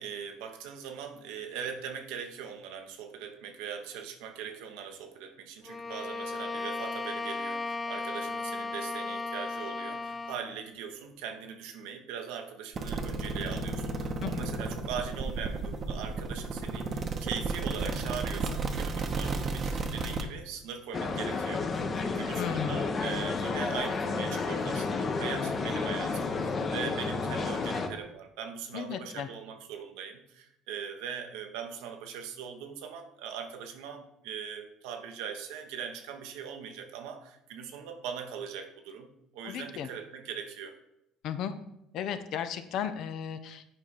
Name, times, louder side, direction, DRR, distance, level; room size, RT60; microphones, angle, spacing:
voice 1, 0.0-40.8, right 7 dB, 75° right, 5 dB, 0.9 m, -40 dB
Bowed string instrument, 5.7-10.5, left 3 dB, 20° left, 0.4 m, -35 dB
sound 1, 12.7-20.2, right 3 dB, 40° right, 0.9 m, -33 dB
sound 2, 20.9-27.9, left 4 dB, 40° left, 0.9 m, -31 dB
voice 2, 22.4-22.9 28.7-29.3 39.4-39.9 41.2-41.5 41.9-43.6, left 8 dB, 65° left, 10 dB, 0.6 m, -35 dB
7.7 x 4.6 x 4.2 m, 0.83 s
hypercardioid pair, 70°, 0 cm